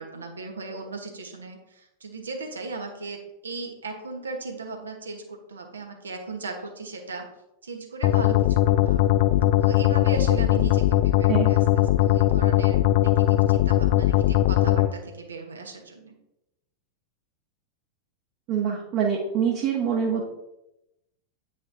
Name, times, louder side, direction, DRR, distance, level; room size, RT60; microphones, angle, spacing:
voice 1, 0.0-7.3 7.6-9.0 9.6-16.1, right 3 dB, 70° right, 3 dB, 1.1 m, -37 dB
sound 1, 8.0-14.9, left 13 dB, 50° left, 0.3 m, -20 dB
voice 2, 18.5-20.2, right 7 dB, 40° right, -3 dB, 1.1 m, -25 dB
8.5 x 5.5 x 2.6 m, 0.89 s
figure-of-eight pair, 90°, 0 cm